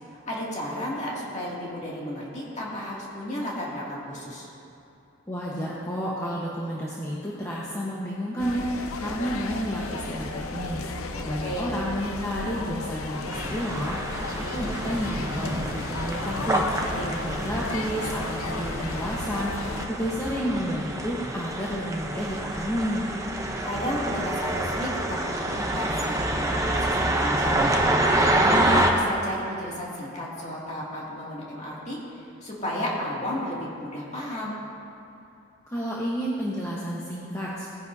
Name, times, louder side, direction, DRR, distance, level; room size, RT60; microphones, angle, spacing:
voice 1, 0.3-4.5 11.1-11.8 16.8-17.1 23.6-27.8 28.4-34.5, equal, 35° left, -5 dB, 2.4 m, -33 dB
voice 2, 5.3-23.1 35.7-37.7, equal, 15° left, -7 dB, 1.1 m, -31 dB
sound 1, 8.4-19.9, left 3 dB, 85° left, 0.7 m, -34 dB
sound 2, 13.3-28.9, right 1 dB, 15° right, 0.7 m, -27 dB
19.0 x 10.0 x 2.7 m, 2.8 s
head